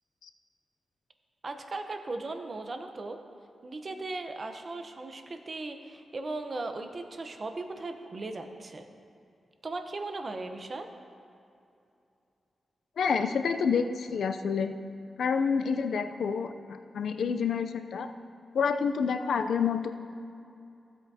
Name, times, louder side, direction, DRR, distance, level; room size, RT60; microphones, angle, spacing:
voice 1, 1.4-3.2 3.6-8.9 9.6-10.9, right 2 dB, 40° right, 6 dB, 0.8 m, -37 dB
voice 2, 13.0-14.7 15.2-18.1 18.5-19.9, left 6 dB, 85° left, 9 dB, 0.4 m, -28 dB
15.5 x 8.1 x 2.8 m, 2.6 s
wide cardioid pair, 100°, 0 cm